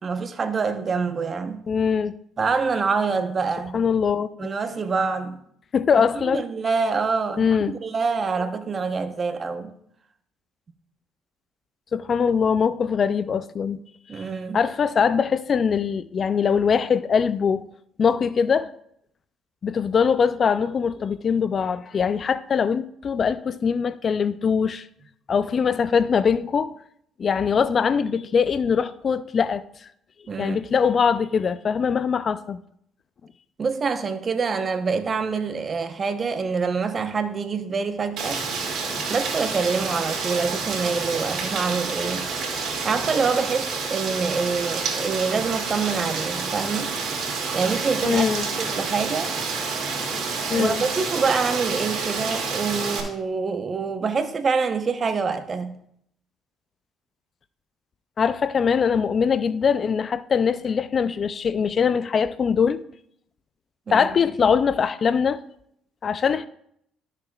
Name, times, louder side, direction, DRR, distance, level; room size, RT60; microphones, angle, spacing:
voice 1, 0.0-1.6 2.4-3.8 4.4-5.4 6.3-7.5 7.8-9.7 14.1-14.6 30.3-30.6 33.6-38.4 39.1-42.3 42.8-47.0 47.5-48.3 48.6-49.3 50.5-55.8 63.9-64.1, right 5 dB, 40° right, 0.9 m, -26 dB
voice 2, 1.7-2.1 3.7-4.5 5.7-6.5 7.4-7.7 11.9-13.8 14.1-14.3 14.5-17.6 18.0-18.7 19.6-24.9 25.3-26.8 27.2-29.9 30.4-32.6 48.0-48.5 50.5-50.8 58.2-62.8 63.9-65.4 66.0-66.5, left 6 dB, 45° left, 0.4 m, -22 dB
Rain, 38.2-53.0, right 4 dB, 65° right, 2.3 m, -28 dB
12.5 x 6.7 x 2.4 m
supercardioid pair, 70°, 0 cm